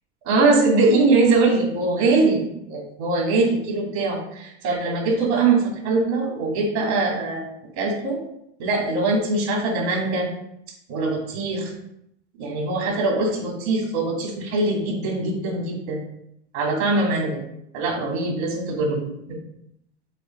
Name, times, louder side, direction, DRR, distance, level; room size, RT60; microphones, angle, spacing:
voice 1, 0.3-7.5 7.8-8.2 8.6-10.3 10.9-11.7 12.4-16.0 16.5-17.4 17.7-19.4, right 3 dB, 70° right, -2 dB, 2.8 m, -22 dB
7.7 x 2.8 x 5.4 m, 0.77 s
hypercardioid pair, 95°, 34 cm